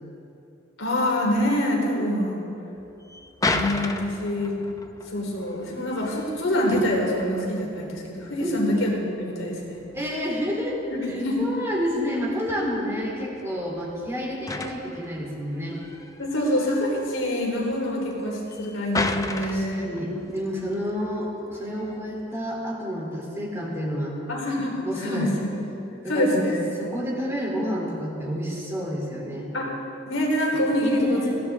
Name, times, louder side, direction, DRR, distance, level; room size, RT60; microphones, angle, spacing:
voice 1, 0.8-2.4 3.5-4.6 5.1-9.9 10.9-11.5 16.2-20.0 24.3-25.3 26.1-26.6 29.5-29.7 30.1-31.3, left 1 dB, 90° left, -2 dB, 3.6 m, -25 dB
sound 1, 2.8-22.5, left 2 dB, 20° left, 0.7 m, -36 dB
voice 2, 9.9-10.8 11.1-15.8 19.4-24.2 24.8-25.3 26.0-29.5 30.8-31.4, equal, 15° right, -3 dB, 3.2 m, -30 dB
21.5 x 16.5 x 3.6 m, 2.8 s
head